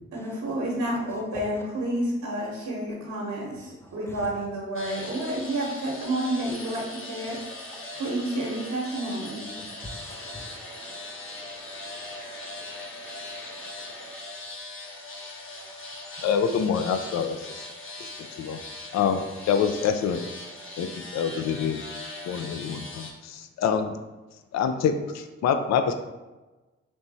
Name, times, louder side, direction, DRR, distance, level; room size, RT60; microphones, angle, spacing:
voice 1, 0.1-9.5, right 1 dB, 75° right, -3 dB, 1.0 m, -30 dB
sound 1, 4.8-23.1, left 2 dB, 45° left, 1.1 m, -40 dB
voice 2, 9.8-14.1, equal, 10° left, 2 dB, 0.9 m, -48 dB
voice 3, 16.2-17.5 18.0-18.6 18.9-20.3 20.8-21.8 22.3-24.0 24.5-25.9, left 7 dB, 65° left, 8 dB, 0.4 m, -26 dB
3.4 x 3.0 x 4.0 m, 1.1 s
supercardioid pair, 45°, 30 cm